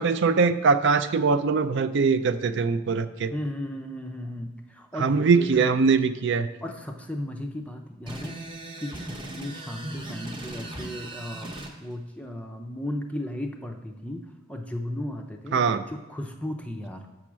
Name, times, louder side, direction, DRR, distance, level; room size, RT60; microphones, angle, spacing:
voice 1, 0.0-3.3 5.0-6.5 15.5-15.8, right 4 dB, 55° right, 12 dB, 0.4 m, -22 dB
voice 2, 3.3-5.7 6.6-8.4 8.8-11.5 11.8-17.1, left 1 dB, 5° left, 4 dB, 0.5 m, -35 dB
sound 1, 8.1-11.7, right 1 dB, 20° right, 0.8 m, -38 dB
6.0 x 5.8 x 6.2 m, 1.1 s
head